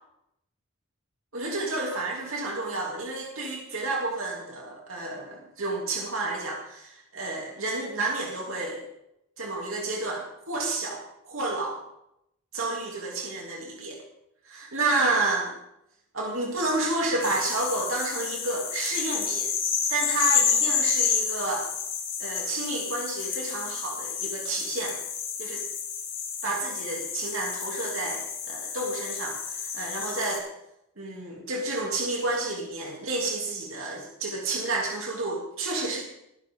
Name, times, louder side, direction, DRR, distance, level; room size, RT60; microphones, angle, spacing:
voice 1, 1.3-8.9 9.4-11.8 12.5-14.0 14.4-15.5 16.1-19.5 19.9-21.7 22.2-25.0 25.4-25.6 26.4-30.4 31.0-36.0, right 2 dB, 75° right, -2 dB, 3.1 m, -30 dB
sound 1, 17.2-30.4, left 7 dB, 55° left, 6.1 m, -30 dB
21.5 x 12.5 x 3.9 m, 0.81 s
head